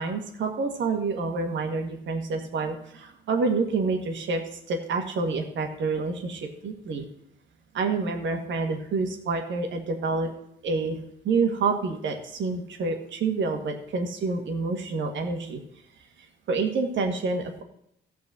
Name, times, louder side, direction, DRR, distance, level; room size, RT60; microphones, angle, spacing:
voice 1, 0.0-4.4 4.7-7.1 7.7-10.3 10.6-11.0 11.2-15.6 16.5-17.6, right 4 dB, 70° right, 4 dB, 2.0 m, -28 dB
14.0 x 4.7 x 7.7 m, 0.74 s
cardioid pair, 90°, 20 cm